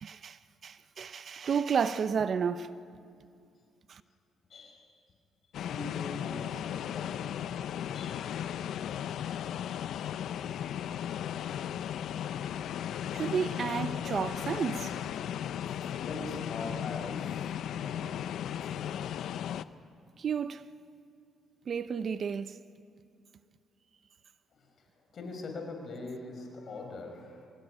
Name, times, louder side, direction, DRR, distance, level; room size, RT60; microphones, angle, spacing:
voice 1, 0.0-2.7 3.9-4.0 13.1-14.8 20.2-20.7 21.7-22.6, right 6 dB, 50° right, 0.7 m, -31 dB
voice 2, 4.5-5.0 5.5-7.3 7.9-8.4 14.0-14.7 16.0-18.3 24.5-27.5, left 3 dB, 55° left, 5.5 m, -43 dB
sound 1, 5.5-19.6, left 10 dB, 75° left, 0.6 m, -36 dB
25.0 x 18.0 x 10.0 m
cardioid pair, 90°, 0 cm